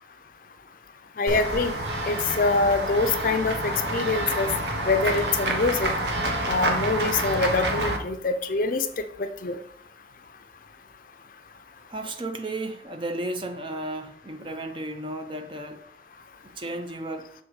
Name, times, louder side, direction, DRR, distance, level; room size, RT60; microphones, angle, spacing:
voice 1, 1.2-1.7 2.1-4.5 4.9-5.9 6.5-8.9 9.2-9.6, left 3 dB, 50° left, 0.5 m, -24 dB
Run / Walk footsteps / Bell, 1.3-8.0, right 1 dB, 70° right, 1.1 m, -28 dB
voice 2, 11.9-15.9 16.4-17.3, right 1 dB, 30° right, 0.5 m, -34 dB
6.5 x 3.6 x 4.7 m
head